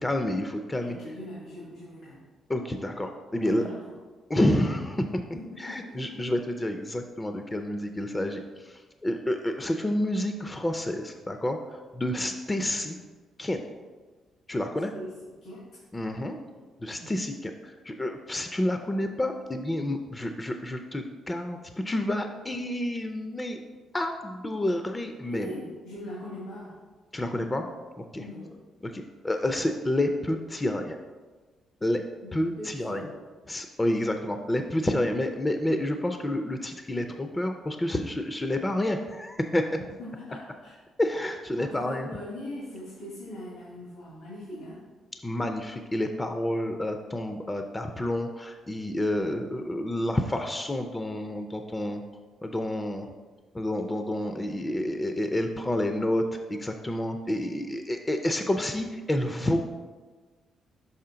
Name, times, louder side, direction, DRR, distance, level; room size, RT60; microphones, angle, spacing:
voice 1, 0.0-0.9 2.5-3.6 4.3-5.2 5.6-13.0 13.4-13.6 14.5-14.9 15.9-16.3 16.8-23.6 23.9-25.5 27.1-27.7 28.1-28.2 28.9-31.0 31.8-32.0 32.3-33.0 33.5-39.6 41.0-42.1 45.2-52.0 52.4-53.1 53.5-56.2 56.5-59.6, left 1 dB, 15° left, 6 dB, 0.5 m, -29 dB
voice 2, 0.7-2.3 3.4-3.9 5.3-6.2 12.2-12.3 14.9-15.1 15.4-15.6 16.9-17.1 25.2-26.7 28.1-28.5 32.2-33.2 39.8-40.8 41.6-44.8, left 1 dB, 85° left, -7 dB, 1.9 m, -41 dB
5.6 x 5.4 x 3.8 m, 1.3 s
cardioid pair, 90°, 0 cm